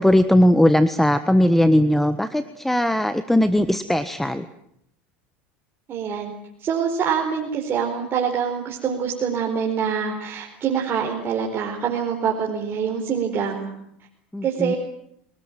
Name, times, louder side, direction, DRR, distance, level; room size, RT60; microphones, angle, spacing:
voice 1, 0.0-4.5 14.3-14.7, left 1 dB, 5° left, 11 dB, 1.3 m, -19 dB
voice 2, 5.9-6.3 6.6-13.7 14.4-14.8, right 7 dB, 40° right, 0 dB, 4.5 m, -25 dB
25.0 x 19.5 x 9.2 m, 0.74 s
supercardioid pair, 100°, 6 cm